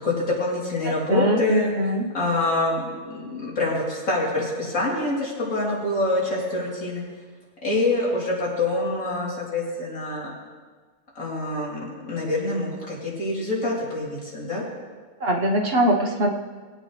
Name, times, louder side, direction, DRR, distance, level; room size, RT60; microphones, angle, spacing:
voice 1, 0.0-1.7 2.1-7.0 7.6-10.3 11.2-14.6, left 2 dB, 90° left, -6 dB, 3.9 m, -26 dB
voice 2, 0.8-2.1 15.2-16.3, equal, 50° right, 1 dB, 1.3 m, -22 dB
21.0 x 9.1 x 3.3 m, 1.5 s
omnidirectional pair, 1.4 m